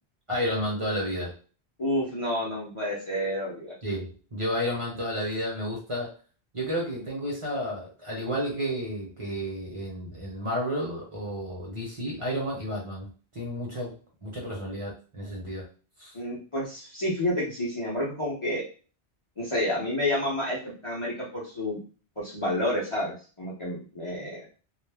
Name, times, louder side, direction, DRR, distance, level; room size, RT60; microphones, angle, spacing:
voice 1, 0.3-1.3 3.8-6.1 6.5-13.1 13.3-15.7 16.0-16.1, equal, 35° right, -3 dB, 0.8 m, -31 dB
voice 2, 1.8-3.7 16.1-18.6 19.4-20.6 20.8-21.8 22.2-24.4, left 1 dB, 35° left, -5 dB, 0.7 m, -29 dB
2.3 x 2.1 x 3.3 m, 0.37 s
omnidirectional pair, 1.1 m